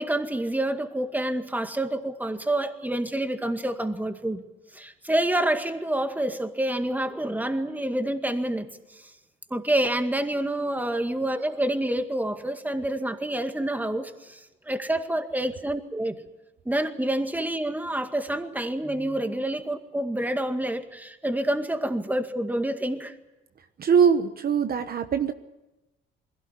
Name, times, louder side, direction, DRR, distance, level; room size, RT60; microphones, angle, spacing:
voice 1, 0.0-4.4 4.7-9.0 9.5-16.2 16.7-23.2, right 1 dB, 10° right, 7 dB, 2.0 m, -28 dB
voice 2, 23.8-25.3, right 7 dB, 50° right, 9 dB, 1.1 m, -22 dB
21.5 x 16.5 x 9.8 m, 0.98 s
cardioid pair, 90°, 20 cm